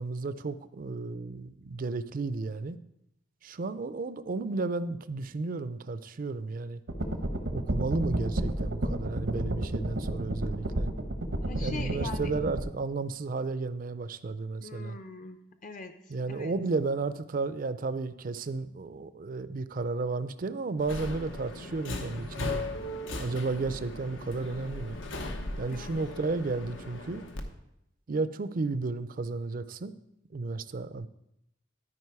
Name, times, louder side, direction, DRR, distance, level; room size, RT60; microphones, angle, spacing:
voice 1, 0.0-2.8 3.4-6.8 7.5-10.9 11.6-15.0 16.1-22.6 23.2-25.0 25.6-27.2 28.1-29.9 30.3-31.1, right 3 dB, 45° right, 13 dB, 0.4 m, -33 dB
sound 1, 6.9-12.6, right 1 dB, 90° right, 1.0 m, -31 dB
voice 2, 11.4-12.3 14.6-16.0 16.3-16.5 25.7-26.1, left 3 dB, 45° left, 8 dB, 0.7 m, -42 dB
Subway metro underground, 20.8-27.4, left 2 dB, 80° left, 1.0 m, -38 dB
12.5 x 5.0 x 4.7 m, 0.81 s
head